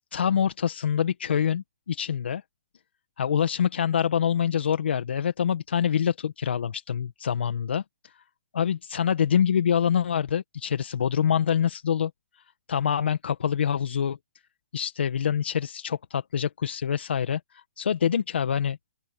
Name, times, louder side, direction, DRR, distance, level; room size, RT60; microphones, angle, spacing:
voice 1, 0.1-2.4 3.2-8.1 8.5-12.1 12.7-14.2 14.7-18.8, left 8 dB, 80° left, 1.5 m, -25 dB
open air
hypercardioid pair, 165°, 6 cm